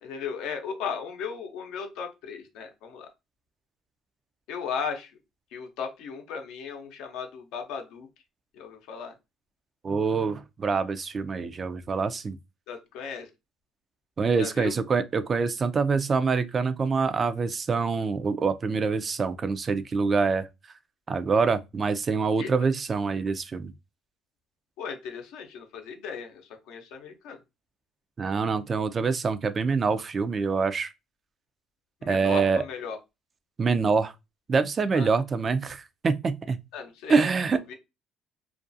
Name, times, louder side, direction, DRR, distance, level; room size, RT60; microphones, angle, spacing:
voice 1, 0.0-3.1 4.5-5.1 5.5-8.1 8.5-9.1 12.7-13.3 14.4-14.8 22.4-22.5 24.8-26.4 26.7-27.4 32.0-33.0 34.9-35.1 36.7-37.2 37.7-37.8, left 6 dB, 80° left, 0.6 m, -36 dB
voice 2, 9.8-12.4 14.2-20.5 21.1-23.7 28.2-30.9 32.1-32.6 33.6-34.1 34.5-36.6 37.1-37.6, right 4 dB, 35° right, 0.3 m, -25 dB
2.4 x 2.3 x 2.5 m
supercardioid pair, 85°, 0 cm